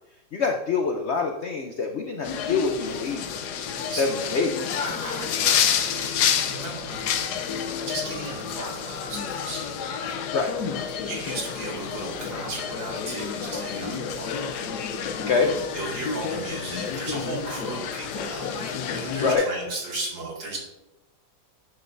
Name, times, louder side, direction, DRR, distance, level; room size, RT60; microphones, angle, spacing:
voice 1, 0.3-3.3 4.0-4.5 10.3-10.5 15.2-15.5 19.2-19.4, left 4 dB, 85° left, 3 dB, 0.6 m, -25 dB
sound 1, 2.2-19.4, left 7 dB, 70° left, 1.1 m, -29 dB
voice 2, 4.8-9.6 10.9-14.6 15.7-20.6, right 2 dB, 90° right, -4 dB, 3.0 m, -36 dB
9.5 x 6.4 x 2.6 m, 0.94 s
omnidirectional pair, 2.0 m